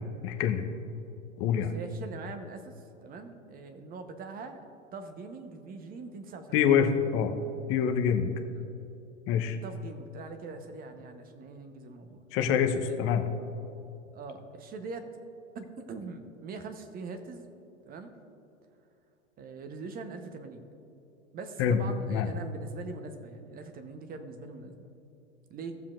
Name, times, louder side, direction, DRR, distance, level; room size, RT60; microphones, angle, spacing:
voice 1, 0.2-0.6 1.4-1.7 6.5-7.3 7.7-8.3 9.3-9.6 12.3-13.2 21.6-21.8 22.1-22.3, left 8 dB, 35° left, 6 dB, 0.8 m, -25 dB
voice 2, 1.5-2.7 3.0-6.7 8.5-8.7 9.4-12.2 12.8-13.4 14.1-15.1 15.5-17.5 17.9-18.1 19.4-20.7 21.3-24.9 25.5-25.8, right 4 dB, 20° right, 7 dB, 0.9 m, -42 dB
17.5 x 7.2 x 2.5 m, 2.8 s
figure-of-eight pair, 100°, 40 cm